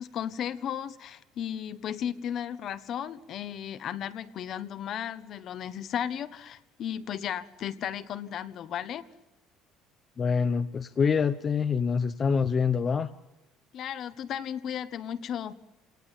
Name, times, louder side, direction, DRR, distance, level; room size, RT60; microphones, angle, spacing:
voice 1, 0.0-9.0 13.7-15.5, left 9 dB, 50° left, 13 dB, 1.1 m, -35 dB
voice 2, 10.2-13.1, left 6 dB, 30° left, 9 dB, 0.8 m, -26 dB
27.0 x 18.5 x 9.0 m, 1.1 s
cardioid pair, 125°, 0 cm